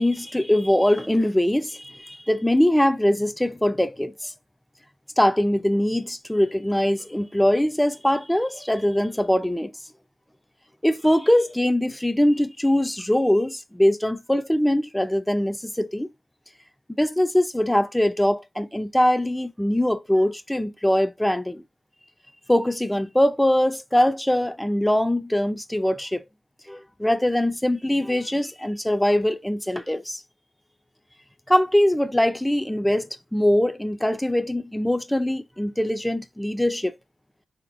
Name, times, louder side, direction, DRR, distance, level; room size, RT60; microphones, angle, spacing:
voice 1, 0.0-4.3 5.2-9.7 10.8-16.1 16.9-21.6 22.5-26.2 26.7-30.2 31.5-36.9, left 1 dB, 10° left, 0.5 m, -22 dB
3.8 x 2.9 x 2.2 m
cardioid pair, 50°, 0 cm